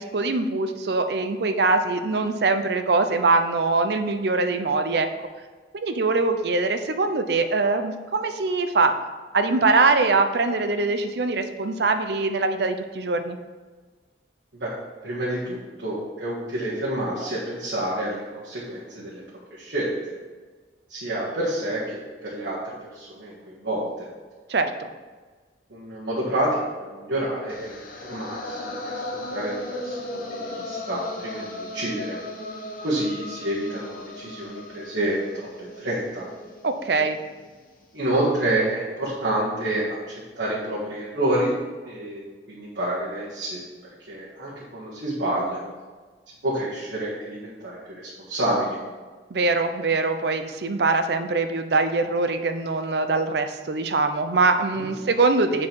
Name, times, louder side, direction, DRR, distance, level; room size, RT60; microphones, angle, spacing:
voice 1, 0.0-5.1 5.7-8.9 9.3-13.4 24.5-24.7 36.6-37.2 49.3-55.7, right 3 dB, 65° right, 8 dB, 0.6 m, -23 dB
voice 2, 15.0-19.2 19.5-20.1 20.9-24.1 25.7-29.0 29.3-32.2 32.8-36.3 37.9-41.5 41.8-43.6 44.1-45.6 46.4-48.8 54.7-55.0, right 1 dB, 85° right, -8 dB, 1.7 m, -28 dB
sound 1, 27.5-37.6, left 1 dB, 50° left, 0.9 m, -36 dB
7.3 x 5.0 x 4.6 m, 1.4 s
head